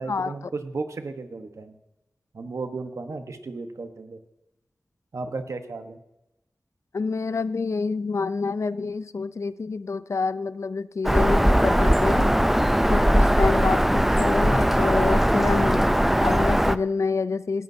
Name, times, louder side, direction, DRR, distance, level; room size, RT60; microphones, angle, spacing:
voice 1, 0.0-1.7 2.3-4.2 5.1-6.0, right 3 dB, 80° right, 7 dB, 1.1 m, -34 dB
voice 2, 6.9-12.3 12.9-17.6, left 4 dB, 75° left, 15 dB, 0.5 m, -27 dB
Bird vocalization bird call bird song, 11.0-16.8, equal, 5° right, 0.5 m, -20 dB
17.5 x 13.0 x 2.8 m, 0.92 s
cardioid pair, 45°, 5 cm